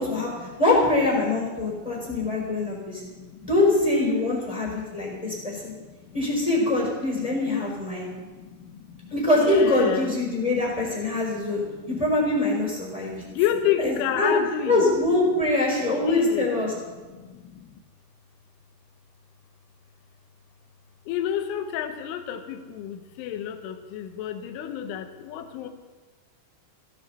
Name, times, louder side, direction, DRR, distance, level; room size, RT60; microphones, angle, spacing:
voice 1, 0.0-0.6 1.7-3.5 4.6-6.2 7.2-7.3 7.9-10.1 11.1-11.9 12.9-14.8 16.0-16.5 16.9-17.8 21.1-25.7, left 10 dB, 80° left, 6 dB, 3.2 m, -32 dB
voice 2, 0.6-3.0 3.4-5.7 6.1-8.1 9.1-13.2 13.8-14.3 14.7-16.7, left 2 dB, 10° left, -4 dB, 3.5 m, -23 dB
16.5 x 13.5 x 4.2 m, 1.3 s
omnidirectional pair, 6.0 m